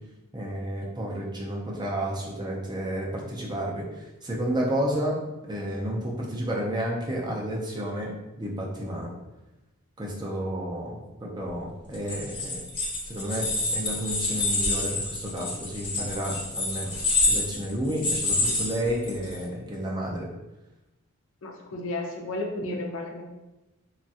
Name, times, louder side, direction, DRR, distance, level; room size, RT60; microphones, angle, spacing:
voice 1, 0.3-3.8 4.2-5.2 5.5-8.1 8.4-9.1 10.0-12.6 13.0-16.9 17.3-20.3, right 1 dB, 20° right, -3 dB, 0.4 m, -31 dB
sound 1, 11.9-19.4, left 2 dB, 25° left, 0.8 m, -28 dB
voice 2, 21.4-23.2, left 2 dB, 65° left, 2 dB, 0.4 m, -33 dB
3.1 x 2.3 x 2.7 m, 1.0 s
head